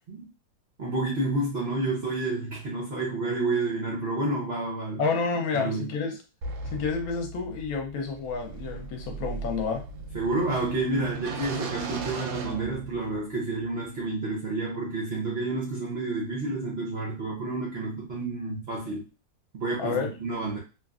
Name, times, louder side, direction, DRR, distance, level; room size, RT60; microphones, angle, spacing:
voice 1, 0.8-5.0 5.5-5.9 10.1-19.0 19.5-20.6, right 2 dB, 65° right, -4 dB, 0.6 m, -30 dB
voice 2, 5.0-6.2 6.7-9.9 19.8-20.1, left 5 dB, 65° left, 3 dB, 1.0 m, -29 dB
sound 1, 6.4-13.3, right 4 dB, 90° right, 1.3 m, -37 dB
2.9 x 2.5 x 2.3 m, 0.32 s
omnidirectional pair, 2.0 m